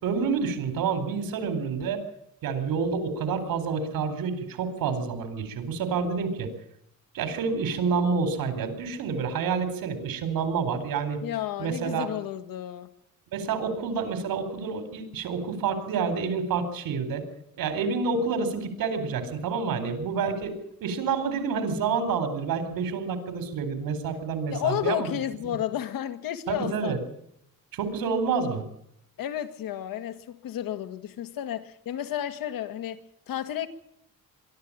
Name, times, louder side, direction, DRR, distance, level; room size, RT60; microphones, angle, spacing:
voice 1, 0.0-2.0 2.4-6.5 7.1-11.2 11.6-12.1 13.3-17.2 17.5-20.5 20.8-25.1 26.5-27.0 27.7-28.6, right 5 dB, 90° right, 4.2 m, -28 dB
voice 2, 11.2-12.9 24.5-27.0 29.2-33.7, left 11 dB, 80° left, 1.9 m, -32 dB
23.5 x 12.5 x 8.7 m
cardioid pair, 155°, 34 cm